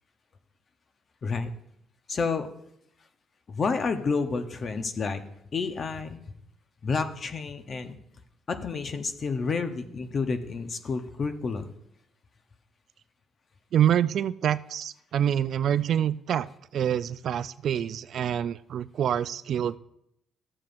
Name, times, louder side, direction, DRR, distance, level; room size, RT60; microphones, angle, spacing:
voice 1, 1.2-1.5 2.1-2.5 3.5-5.2 5.5-6.2 6.8-8.0 8.5-11.7, left 4 dB, 40° left, 8 dB, 0.8 m, -29 dB
voice 2, 13.7-16.5 16.7-19.8, right 10 dB, 55° right, 15 dB, 0.3 m, -26 dB
13.5 x 7.3 x 2.5 m, 0.74 s
cardioid pair, 125°, 0 cm